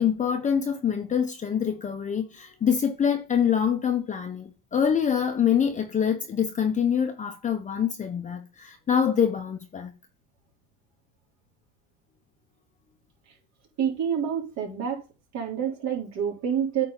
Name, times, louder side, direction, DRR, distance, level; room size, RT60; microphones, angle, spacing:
voice 1, 0.0-9.9, left 8 dB, 20° left, 1.0 m, -25 dB
voice 2, 13.8-15.0 15.3-16.9, right 8 dB, 50° right, 3.5 m, -27 dB
8.8 x 4.3 x 4.0 m
supercardioid pair, 120°, 35 cm